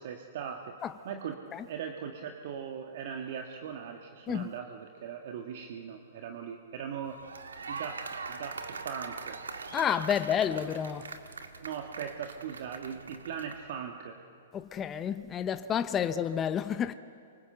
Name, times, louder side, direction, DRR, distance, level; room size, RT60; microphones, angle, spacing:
voice 1, 0.0-0.7 1.0-7.2 7.7-8.0 8.3-9.4 11.6-14.2, right 7 dB, 60° right, 1.8 m, -39 dB
sound 1, 7.0-13.7, right 4 dB, 85° right, 1.9 m, -42 dB
voice 2, 9.7-11.1 14.5-16.9, left 8 dB, 20° left, 0.7 m, -30 dB
26.5 x 24.5 x 7.9 m
hypercardioid pair, 125°, 0 cm